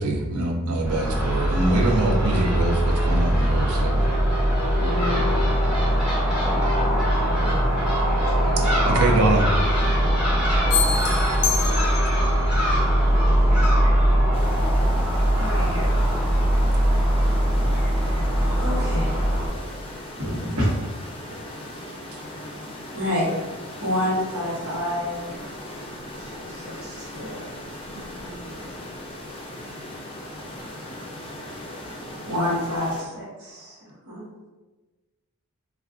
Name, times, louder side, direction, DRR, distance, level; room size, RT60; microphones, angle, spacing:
voice 1, 0.0-4.0 8.5-9.5, right 2 dB, 85° right, 3 dB, 0.5 m, -24 dB
Crow / Gull seagull, 0.8-19.5, equal, 5° right, 1.1 m, -21 dB
voice 2, 4.8-5.4 8.2-8.3 10.4-11.2 13.5-13.6 18.1-18.3 19.5-19.6 25.3-25.5 27.9-28.7, right 1 dB, 40° right, -11 dB, 0.8 m, -37 dB
sound 1, 10.7-12.4, left 7 dB, 80° left, 0.4 m, -26 dB
sound 2, 14.3-33.0, left 1 dB, 25° left, 0.5 m, -38 dB
voice 3, 15.4-16.1 17.1-17.3 18.6-19.2 20.2-20.7 22.9-23.3 23.8-25.3 26.2-27.4 32.3-33.8 34.1-34.2, left 1 dB, 70° right, -5 dB, 1.0 m, -28 dB
2.4 x 2.4 x 3.5 m, 1.2 s
head